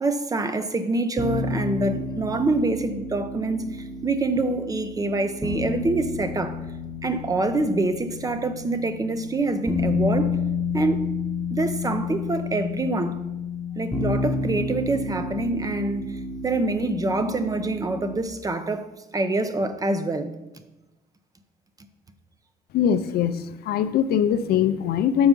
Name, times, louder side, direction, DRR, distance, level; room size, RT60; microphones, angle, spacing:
voice 1, 0.0-6.6 7.0-10.4 10.7-11.2 11.5-13.2 13.8-18.9 19.1-20.3, right 2 dB, 20° right, 0.6 m, -26 dB
sound 1, 1.2-18.2, left 4 dB, ahead, 1.0 m, -30 dB
voice 2, 22.7-25.3, left 9 dB, 65° left, 0.5 m, -22 dB
6.9 x 4.7 x 5.3 m
cardioid pair, 110°, 17 cm